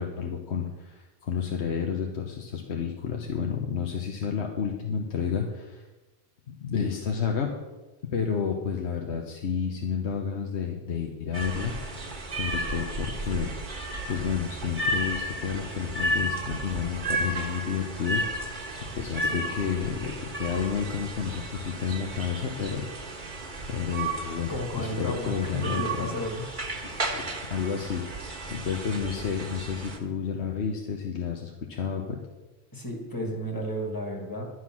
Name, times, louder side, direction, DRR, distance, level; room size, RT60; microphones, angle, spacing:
voice 1, 0.0-5.8 6.5-7.5 8.1-12.0 12.3-13.5 14.1-18.6 19.0-22.9 23.1-23.3 23.7-26.1 26.8-32.2, left 7 dB, 85° left, 2 dB, 1.3 m, -31 dB
sound 1, 11.3-30.0, right 1 dB, 45° right, 1.5 m, -33 dB
voice 2, 24.5-26.7 32.7-34.5, equal, 20° left, 1 dB, 1.9 m, -33 dB
11.5 x 7.9 x 6.0 m, 1.1 s
omnidirectional pair, 1.1 m